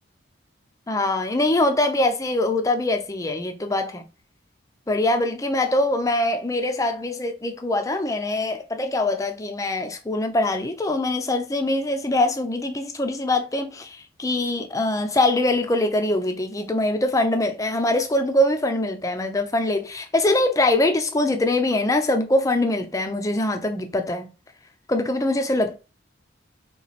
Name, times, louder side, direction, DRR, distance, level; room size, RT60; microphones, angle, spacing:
voice 1, 0.9-4.0 4.9-24.3 24.9-25.8, left 2 dB, 15° left, 0.5 m, -23 dB
3.3 x 3.1 x 4.1 m
head